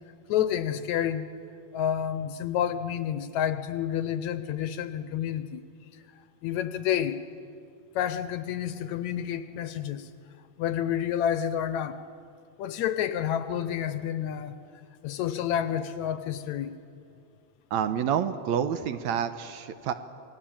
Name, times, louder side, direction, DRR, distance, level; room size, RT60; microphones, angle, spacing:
voice 1, 0.3-1.3 1.7-5.6 6.4-7.2 8.0-10.1 10.6-12.0 12.6-14.6 15.0-16.8, left 10 dB, 75° left, 12 dB, 2.0 m, -29 dB
voice 2, 17.7-19.9, right 8 dB, 70° right, 10 dB, 2.0 m, -28 dB
27.5 x 19.5 x 8.7 m, 2.5 s
omnidirectional pair, 3.6 m